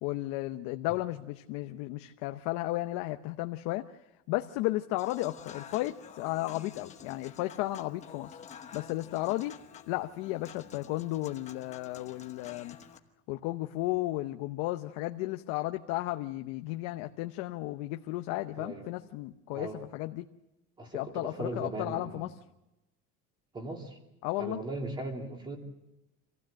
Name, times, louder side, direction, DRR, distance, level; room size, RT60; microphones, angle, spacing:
voice 1, 0.0-3.9 4.3-8.4 8.7-9.5 9.9-12.8 13.3-20.2 20.9-22.3 24.2-24.6, left 17 dB, 70° left, 6 dB, 0.9 m, -34 dB
Human voice / Acoustic guitar / Piano, 5.0-13.0, left 8 dB, 25° left, 1.1 m, -50 dB
voice 2, 18.6-18.9 19.5-19.8 20.8-22.3 23.5-24.0 24.4-25.6, right 2 dB, 15° right, 2 dB, 2.8 m, -38 dB
26.0 x 15.5 x 7.6 m, 0.95 s
cardioid pair, 175°, 30 cm